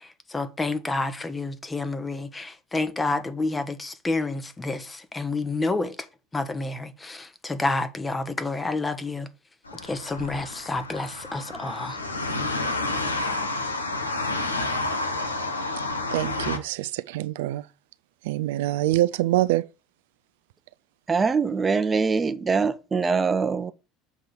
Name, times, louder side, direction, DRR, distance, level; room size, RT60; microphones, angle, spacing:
voice 1, 0.0-6.0 6.3-9.3 9.8-12.0, left 3 dB, 15° left, 1.1 m, -29 dB
sound 1, 9.6-16.6, left 2 dB, 90° left, 1.0 m, -30 dB
voice 2, 16.1-17.6 18.2-19.6, right 15 dB, 70° right, 0.3 m, -25 dB
voice 3, 21.1-23.7, right 5 dB, 25° right, 0.8 m, -23 dB
7.1 x 3.8 x 6.5 m
figure-of-eight pair, 70°, 0 cm